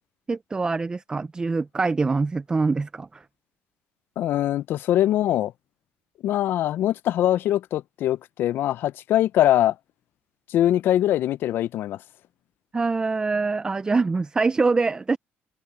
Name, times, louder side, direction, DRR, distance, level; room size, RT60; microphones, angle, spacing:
voice 1, 0.3-3.2 12.7-15.2, right 4 dB, 20° right, 0.5 m, -24 dB
voice 2, 4.2-5.5 6.2-9.7 10.5-12.0, left 12 dB, 65° left, 0.4 m, -22 dB
cardioid pair, 100°, 4 cm